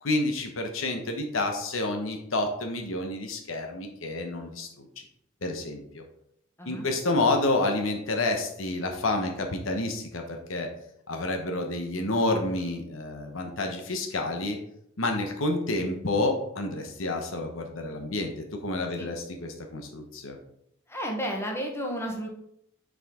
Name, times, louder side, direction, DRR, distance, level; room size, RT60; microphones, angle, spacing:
voice 1, 0.0-5.0 5.4-6.0 6.6-10.7 11.1-14.6 15.0-18.3 18.6-20.4, left 2 dB, 75° left, 4 dB, 1.0 m, -29 dB
voice 2, 20.9-22.3, equal, 15° left, 1 dB, 1.1 m, -32 dB
6.4 x 5.1 x 3.7 m, 0.74 s
head